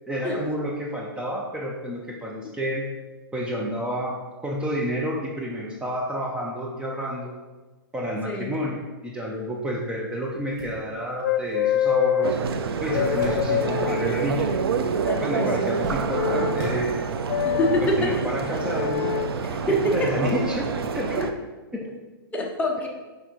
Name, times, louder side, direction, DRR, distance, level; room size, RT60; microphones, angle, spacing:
voice 1, 0.1-2.9 3.3-7.3 7.9-12.4 12.8-14.5 15.2-17.0 17.8-19.1 19.7-21.3 21.7-21.9, equal, 5° right, -3 dB, 0.8 m, -30 dB
sound 1, 9.7-9.8 10.2-14.0 14.3-15.0 15.3-17.4 18.1-18.2 19.5-19.7, right 1 dB, 25° right, 1.9 m, -40 dB
sound 2, 11.2-12.3 12.9-14.6 16.1-16.7 17.3-17.8 18.7-19.3 20.2-20.5, left 10 dB, 65° left, 0.4 m, -26 dB
sound 3, 12.2-21.3, right 5 dB, 80° right, 0.7 m, -27 dB
voice 2, 15.0-15.7 17.4-18.2 19.4-20.1 21.2-21.3 22.3-22.9, left 1 dB, 10° left, -1 dB, 1.2 m, -26 dB
6.3 x 4.9 x 4.7 m, 1.3 s
hypercardioid pair, 135°, 13 cm